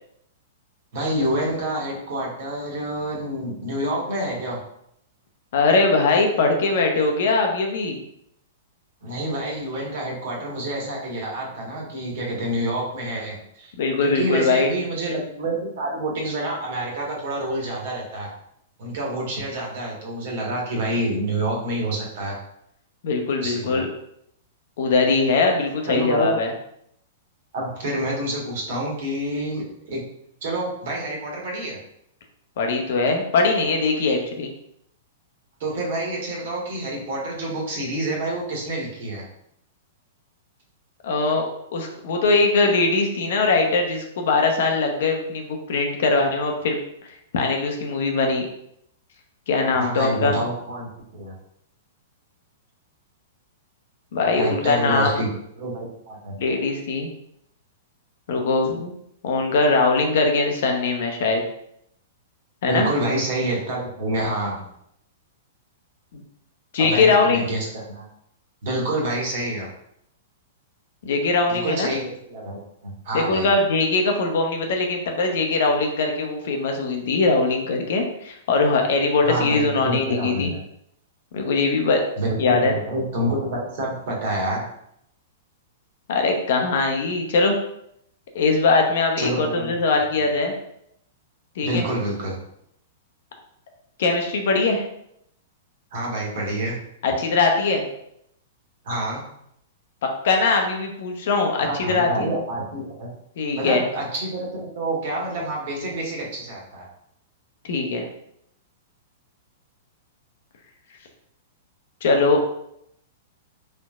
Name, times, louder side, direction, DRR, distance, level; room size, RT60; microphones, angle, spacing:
voice 1, 0.9-4.6 9.0-13.7 14.0-18.3 18.8-22.4 23.4-23.8 25.9-26.4 27.5-30.0 30.4-31.8 35.6-39.2 49.7-51.3 54.4-55.3 55.6-56.3 62.7-64.7 66.8-68.1 68.6-69.7 71.5-72.6 73.0-73.5 79.2-80.6 82.2-84.7 89.2-89.7 91.6-92.4 95.9-96.8 98.8-99.2 101.6-103.1 103.6-106.9, right 1 dB, 55° right, -2 dB, 1.5 m, -27 dB
voice 2, 5.5-8.0 13.8-14.7 23.0-23.9 24.8-26.5 32.6-34.5 41.0-46.8 47.3-48.5 49.5-50.4 54.1-55.2 56.4-57.1 58.3-58.9 59.2-61.4 62.6-62.9 66.1-66.2 66.7-67.4 71.0-71.9 73.1-80.5 81.3-82.0 82.4-82.7 86.1-87.6 88.3-90.5 91.6-91.9 94.0-94.8 97.0-97.8 100.2-102.3 103.4-103.9 107.6-108.1 112.0-112.4, left 3 dB, 60° left, 3 dB, 0.8 m, -21 dB
4.4 x 3.8 x 2.4 m, 0.74 s
figure-of-eight pair, 105°, 0 cm